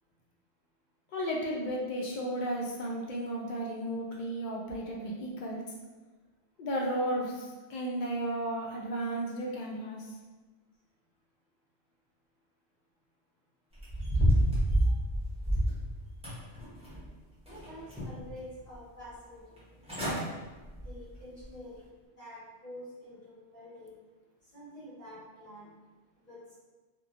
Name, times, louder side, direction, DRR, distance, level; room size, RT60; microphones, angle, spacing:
voice 1, 1.1-5.6 6.6-10.1, right 1 dB, 60° left, -2 dB, 0.5 m, -34 dB
sound 1, 13.8-15.8 16.2-17.1 17.5-18.3 18.7-18.8 19.6-19.7 19.9-20.2 20.7-20.9 21.4-21.5, right 1 dB, 5° right, 0.6 m, -28 dB
voice 2, 17.5-19.9 20.8-23.9 24.5-25.7 26.2-26.4, equal, 40° left, -11 dB, 1.4 m, -48 dB
2.9 x 2.2 x 2.4 m, 1.3 s
omnidirectional pair, 1.1 m